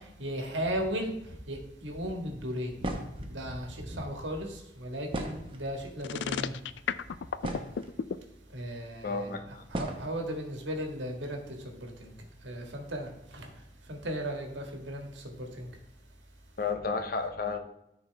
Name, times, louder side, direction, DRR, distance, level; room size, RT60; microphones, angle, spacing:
voice 1, 0.2-1.1 1.5-2.9 3.3-6.6 8.5-11.4 11.7-12.1 12.4-13.5 13.9-15.7, equal, 90° right, 1.7 m, -36 dB
sound 1, 2.8-3.3 5.1-5.8 6.7-6.8 7.1-8.0 8.9-9.0 9.7-10.1, right 1 dB, 30° right, 0.9 m, -35 dB
sound 2, 6.0-8.2, left 7 dB, 80° left, 0.4 m, -32 dB
voice 2, 9.0-9.6 16.6-17.6, left 4 dB, 50° left, 0.8 m, -32 dB
13.5 x 4.7 x 3.4 m
head